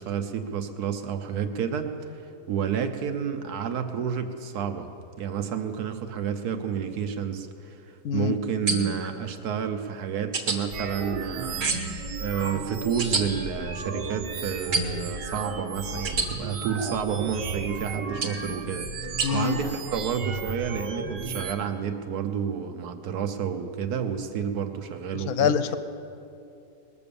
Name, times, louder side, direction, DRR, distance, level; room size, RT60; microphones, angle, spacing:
voice 1, 0.0-2.2 2.5-11.7 12.2-25.6, right 7 dB, 65° right, 7 dB, 1.3 m, -30 dB
voice 2, 8.0-8.4 19.2-19.6 25.3-25.8, left 8 dB, 70° left, 12 dB, 1.0 m, -25 dB
sound 1, 8.7-9.1 10.3-10.6 11.6-12.0 13.0-13.2 14.7-15.1 16.1-16.3 18.2-18.5 19.2-19.3, right 3 dB, 50° right, 1.4 m, -27 dB
sound 2, 10.7-21.5, right 4 dB, 80° right, 1.7 m, -34 dB
20.5 x 7.0 x 6.9 m, 2.7 s
omnidirectional pair, 1.9 m